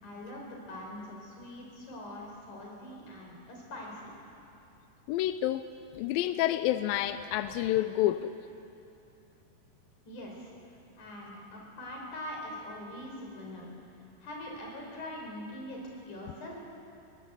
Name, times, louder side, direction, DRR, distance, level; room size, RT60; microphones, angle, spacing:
voice 1, 0.0-4.1 10.1-10.5 11.0-13.7 14.2-15.8 16.1-16.6, left 1 dB, 50° left, -1 dB, 5.6 m, -43 dB
voice 2, 5.1-5.6 6.0-8.3, left 13 dB, 80° left, 11 dB, 2.1 m, -28 dB
23.0 x 18.0 x 8.2 m, 2.8 s
omnidirectional pair, 4.7 m